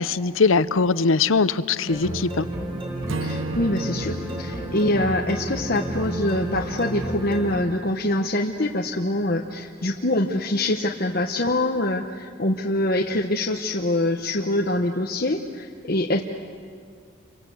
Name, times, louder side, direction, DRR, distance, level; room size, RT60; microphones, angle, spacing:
voice 1, 0.0-2.5, left 4 dB, 80° left, 15 dB, 0.8 m, -21 dB
sound 1, 1.9-7.6, right 1 dB, 25° right, 5.5 m, -31 dB
Acoustic guitar / Strum, 3.1-6.4, right 2 dB, 75° right, 0.8 m, -35 dB
voice 2, 3.2-16.2, left 1 dB, 50° left, 1 dB, 1.1 m, -24 dB
29.5 x 24.0 x 8.0 m, 2.2 s
head